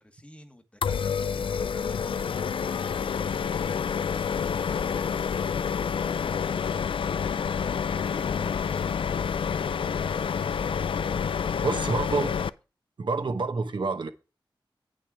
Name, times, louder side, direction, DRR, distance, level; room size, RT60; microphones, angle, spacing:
voice 1, 0.0-2.6 11.6-12.4 13.1-13.3, left 1 dB, 15° left, 1.3 m, -51 dB
sound 1, 0.8-12.5, left 7 dB, 85° left, 0.4 m, -28 dB
voice 2, 11.6-12.3 13.0-14.1, right 4 dB, 65° right, 1.0 m, -27 dB
8.9 x 6.3 x 4.8 m
wide cardioid pair, 110°, 9 cm